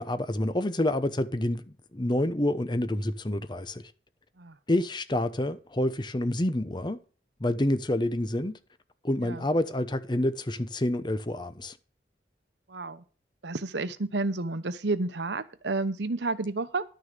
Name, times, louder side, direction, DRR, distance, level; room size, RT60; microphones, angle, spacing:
voice 1, 0.0-1.6 1.9-3.9 4.7-7.0 7.4-8.6 9.0-11.8, left 1 dB, 25° left, 0.9 m, -28 dB
voice 2, 12.7-13.0 13.4-16.8, right 3 dB, 85° right, 0.9 m, -30 dB
11.5 x 6.6 x 6.7 m
head